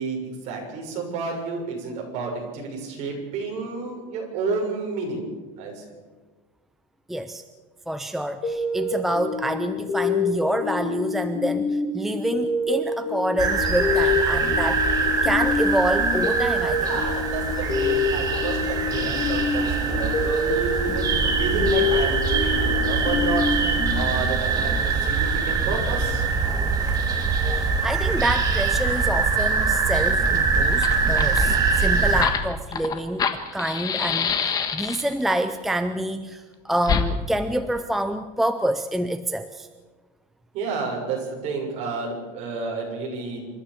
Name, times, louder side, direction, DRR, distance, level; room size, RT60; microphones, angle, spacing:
voice 1, 0.0-5.3 5.6-5.8 14.4-14.7 16.8-26.3 40.5-43.4, right 4 dB, 45° right, 0 dB, 6.7 m, -31 dB
voice 2, 7.1-7.4 7.9-14.9 15.2-16.9 27.5-39.7, right 1 dB, ahead, 9 dB, 0.5 m, -27 dB
sound 1, 8.4-24.8, left 4 dB, 40° left, 3.5 m, -27 dB
sound 2, 13.4-32.2, right 4 dB, 25° right, 2.5 m, -23 dB
Fire, 30.3-30.4 30.7-35.2 36.8-37.1, left 7 dB, 25° left, 1.3 m, -26 dB
27.5 x 13.5 x 7.0 m, 1.3 s
cardioid pair, 170°, 16 cm